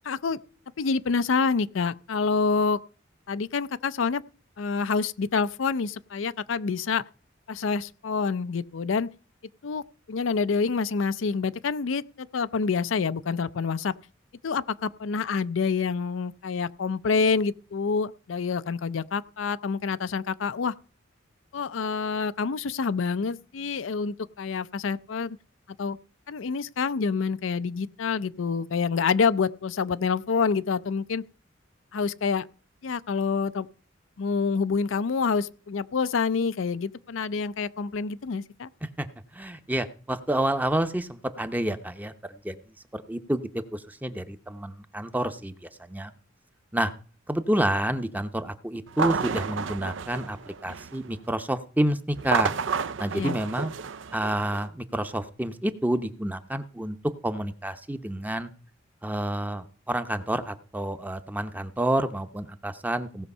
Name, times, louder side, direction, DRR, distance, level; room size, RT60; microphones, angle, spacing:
voice 1, 0.0-0.4 0.8-2.8 3.3-4.2 4.6-7.0 7.5-9.1 9.6-13.9 14.4-20.7 21.5-25.4 25.8-26.0 26.3-31.2 31.9-32.5 32.8-33.7 34.2-38.7 53.1-53.4, left 5 dB, 80° left, 0.5 m, -27 dB
voice 2, 39.3-42.1 42.4-42.6 42.9-46.1 46.7-46.9 47.3-52.5 53.0-53.7 54.1-57.0 57.2-58.5 59.0-63.3, right 1 dB, 10° right, 0.7 m, -29 dB
sound 1, 48.9-51.1 52.1-54.7, right 5 dB, 70° right, 0.5 m, -31 dB
17.0 x 6.4 x 5.4 m
head